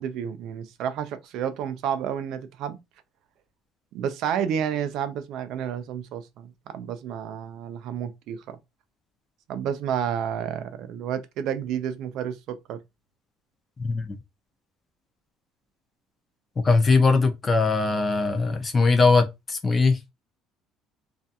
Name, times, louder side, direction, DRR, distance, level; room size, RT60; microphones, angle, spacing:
voice 1, 0.0-2.8 3.9-8.6 9.5-12.8, right 8 dB, 60° right, 0.4 m, -30 dB
voice 2, 13.8-14.2 16.6-20.0, left 4 dB, 20° left, 0.4 m, -20 dB
2.4 x 2.2 x 2.7 m
cardioid pair, 170°, 0 cm